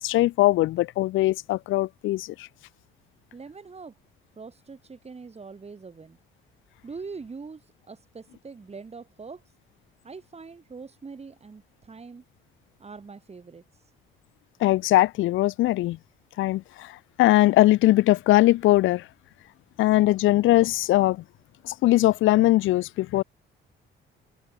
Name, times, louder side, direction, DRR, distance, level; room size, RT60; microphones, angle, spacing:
voice 1, 0.0-2.5 14.6-16.0 16.4-19.1 19.8-21.2 21.6-23.2, left 16 dB, 85° left, 0.7 m, -21 dB
voice 2, 3.3-4.0 4.4-6.2 6.8-9.4 10.0-12.2 12.8-13.6, right 4 dB, 30° right, 5.7 m, -43 dB
cardioid pair, 90°, 20 cm